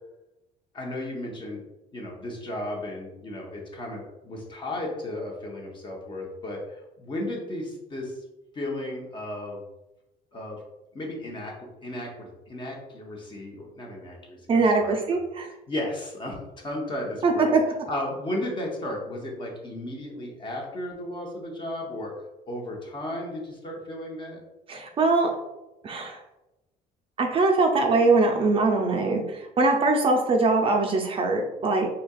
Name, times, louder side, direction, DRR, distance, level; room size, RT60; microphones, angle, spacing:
voice 1, 0.7-1.6 1.9-8.2 8.5-9.6 10.3-10.6 10.9-15.0 15.7-17.5 17.9-22.1 22.5-24.4, left 1 dB, 30° left, 0 dB, 0.8 m, -34 dB
voice 2, 14.5-15.5 17.2-17.6 24.7-25.3 25.8-26.2 27.2-31.9, right 3 dB, 35° right, 2 dB, 0.4 m, -22 dB
4.0 x 2.8 x 2.3 m, 0.96 s
cardioid pair, 130°, 16 cm